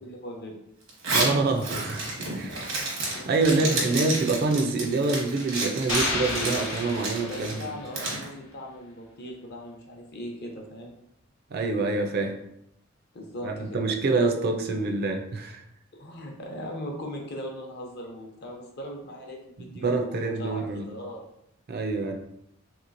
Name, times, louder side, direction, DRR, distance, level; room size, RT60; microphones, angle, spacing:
voice 1, 0.0-0.6 2.4-2.7 3.1-3.3 3.5-3.9 7.2-11.0 13.1-13.8 16.0-21.2, equal, 55° left, 1 dB, 0.7 m, -39 dB
Zipper (clothing), 0.9-8.2, right 2 dB, 80° right, 1.0 m, -31 dB
voice 2, 1.1-2.6 3.1-7.7 11.5-12.3 13.4-15.6 19.8-20.9 21.7-22.1, right 3 dB, 50° right, 4 dB, 0.4 m, -26 dB
sound 1, 5.9-8.0, left 3 dB, 85° left, 0.7 m, -32 dB
3.2 x 2.9 x 2.5 m, 0.77 s
head